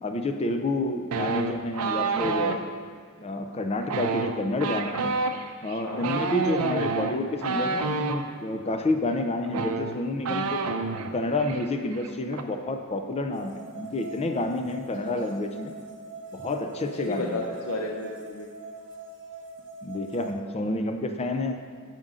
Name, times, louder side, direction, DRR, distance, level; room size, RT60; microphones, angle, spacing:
voice 1, 0.0-2.7 3.2-5.1 5.6-10.6 11.1-15.7 16.3-17.4 19.8-21.6, left 2 dB, 30° left, 6 dB, 0.5 m, -29 dB
sound 1, 1.1-2.6 3.8-8.2 9.1-9.2 9.5-11.1 11.4-11.7 11.9-12.4, right 4 dB, 75° right, 0.5 m, -28 dB
voice 2, 5.6-6.1 15.0-15.4 16.8-18.5, left 2 dB, 85° left, 0 dB, 0.7 m, -34 dB
sound 2, 13.3-20.3, right 3 dB, 55° right, 0.9 m, -42 dB
8.7 x 5.2 x 3.7 m, 2.1 s
head